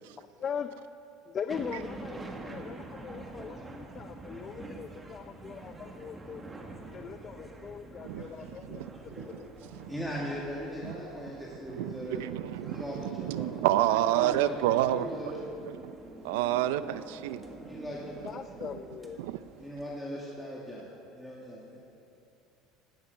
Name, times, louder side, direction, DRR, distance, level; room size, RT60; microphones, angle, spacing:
voice 1, 0.2-0.7 1.3-6.4 6.9-9.5 18.2-19.3, left 7 dB, 35° left, 0.5 m, -40 dB
sound 1, 1.5-19.8, right 2 dB, 15° right, 1.5 m, -46 dB
voice 2, 9.9-12.2 12.7-15.7 17.6-18.2 19.6-20.9 21.1-21.8, equal, ahead, 2.0 m, -39 dB
voice 3, 11.8-15.1 15.7-15.9 16.2-17.4 19.2-19.4, right 13 dB, 90° right, 0.5 m, -29 dB
17.0 x 12.0 x 5.4 m
cardioid pair, 135°, 0 cm